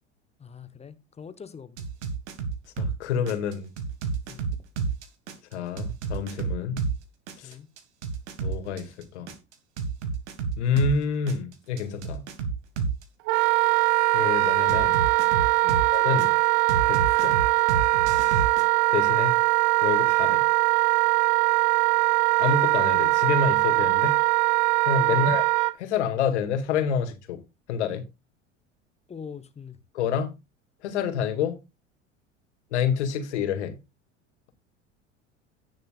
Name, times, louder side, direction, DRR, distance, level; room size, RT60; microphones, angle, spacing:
voice 1, 0.4-1.9 4.3-4.5 7.4-7.7 15.6-15.9 25.1-25.3 29.1-29.8, left 6 dB, 15° left, 1.0 m, -42 dB
sound 1, 1.8-3.0 3.3-7.0 7.3-11.0 11.3-13.0 14.7-16.3 16.7-18.6, right 5 dB, 65° right, 2.0 m, -30 dB
voice 2, 2.8-3.7 5.5-6.8 7.4-7.6 8.4-9.3 10.6-12.2 14.1-15.0 15.9-16.3 16.9-17.4 18.9-19.3 19.8-20.4 22.4-24.1 24.9-25.4 25.8-27.4 27.7-28.0 29.9-30.3 30.8-31.6 32.7-33.8, left 6 dB, 65° left, 2.2 m, -28 dB
Wind instrument woodwind instrument, 13.3-25.7, right 22 dB, 45° right, 0.6 m, -21 dB
17.0 x 6.5 x 2.4 m
figure-of-eight pair, 75°, 38 cm